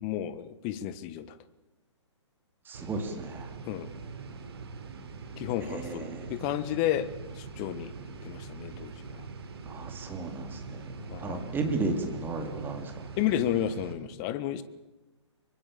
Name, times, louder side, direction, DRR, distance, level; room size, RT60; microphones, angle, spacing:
voice 1, 0.0-1.4 3.6-3.9 5.4-7.1 7.3-7.9 8.2-9.2 11.1-11.6 13.2-14.6, left 11 dB, 30° left, 14 dB, 1.5 m, -32 dB
voice 2, 2.7-3.5 5.7-6.3 9.7-10.9 11.2-12.9, right 3 dB, 15° right, 5 dB, 3.5 m, -34 dB
sound 1, 2.7-13.9, right 4 dB, 55° right, 3.9 m, -43 dB
24.5 x 23.5 x 7.4 m, 1.1 s
figure-of-eight pair, 120°, 15 cm